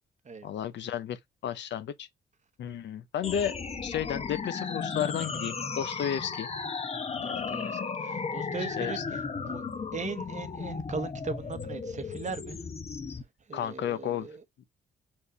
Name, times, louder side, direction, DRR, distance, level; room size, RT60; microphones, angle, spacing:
voice 1, 0.4-2.1 2.6-3.5 3.8-6.5 7.2-7.9 8.8-9.0 13.5-14.3, left 9 dB, 70° left, 0.7 m, -33 dB
sound 1, 3.2-13.2, left 5 dB, 35° left, 0.8 m, -35 dB
voice 2, 7.2-9.6 9.9-12.6 13.5-14.4, right 4 dB, 40° right, 1.0 m, -39 dB
4.6 x 2.6 x 4.0 m
supercardioid pair, 65°, 19 cm